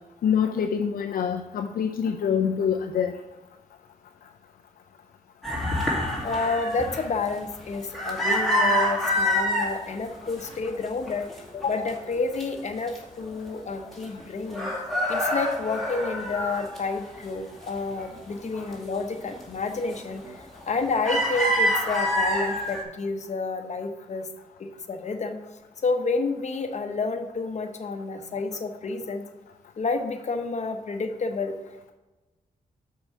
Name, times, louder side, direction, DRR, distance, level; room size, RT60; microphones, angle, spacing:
voice 1, 0.2-3.1, left 7 dB, 75° left, 5 dB, 0.5 m, -25 dB
sound 1, 5.4-9.7 10.2-10.8 11.1-12.4 12.9-13.0 13.3-14.2 14.5-17.3 17.7-18.8 19.2-19.4 19.9-20.3 20.6-22.8, equal, ahead, 2.4 m, -27 dB
voice 2, 6.2-11.3 11.5-14.7 15.1-24.3 24.6-25.4 25.8-29.2 29.8-31.6, left 4 dB, 50° left, 6 dB, 0.9 m, -29 dB
6.1 x 4.7 x 6.5 m, 1.1 s
cardioid pair, 70°, 15 cm